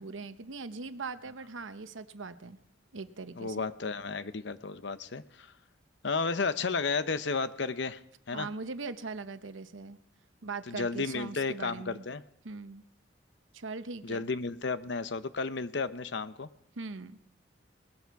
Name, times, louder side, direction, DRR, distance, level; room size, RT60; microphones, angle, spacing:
voice 1, 0.0-2.6 2.9-3.7 8.3-10.0 10.4-12.0 12.4-12.8 13.5-14.3 16.8-17.2, right 4 dB, 85° right, 12 dB, 0.9 m, -40 dB
voice 2, 3.4-5.5 6.0-8.0 8.3-8.5 10.7-12.2 14.0-16.5, left 4 dB, 65° left, 13 dB, 0.7 m, -33 dB
19.5 x 14.0 x 4.7 m, 0.77 s
head